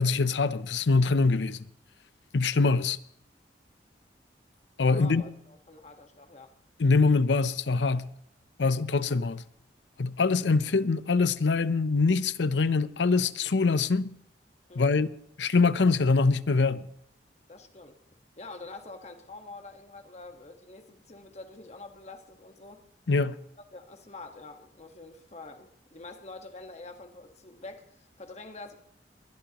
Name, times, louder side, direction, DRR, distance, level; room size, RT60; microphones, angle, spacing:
voice 1, 0.0-1.7 2.3-3.0 4.8-5.2 6.8-8.1 8.6-9.4 10.0-14.1 14.8-15.1 15.4-16.8 23.1-23.4, left 4 dB, 85° left, 0.7 m, -24 dB
voice 2, 4.8-6.5 14.7-15.1 17.5-18.0 18.4-22.8 23.7-28.8, left 3 dB, 40° left, 1.5 m, -46 dB
21.5 x 20.5 x 3.0 m
head